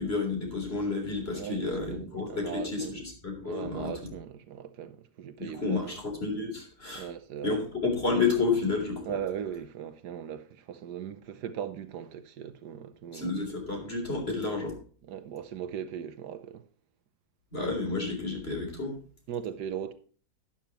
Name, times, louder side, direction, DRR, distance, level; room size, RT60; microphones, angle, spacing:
voice 1, 0.0-4.1 5.4-7.1 7.4-9.0 13.1-14.8 17.5-19.0, left 4 dB, 35° left, 3.8 m, -30 dB
voice 2, 1.3-3.0 3.4-6.0 6.9-7.6 9.0-13.3 15.0-16.6 19.3-19.9, right 8 dB, 75° right, 1.4 m, -38 dB
12.0 x 10.5 x 3.0 m
omnidirectional pair, 1.8 m